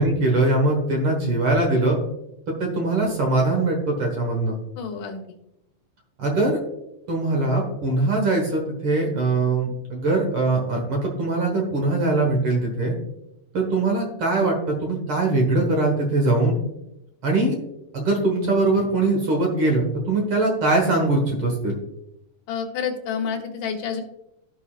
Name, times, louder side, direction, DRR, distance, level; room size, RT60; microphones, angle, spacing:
voice 1, 0.0-2.0 2.5-4.6 6.2-6.6 7.1-12.9 13.5-16.5 17.2-17.6 17.9-21.7, right 2 dB, 50° right, 1 dB, 1.9 m, -22 dB
voice 2, 4.8-5.2 22.5-24.0, left 6 dB, 85° left, 3 dB, 2.6 m, -29 dB
14.5 x 5.6 x 2.4 m, 0.84 s
omnidirectional pair, 3.6 m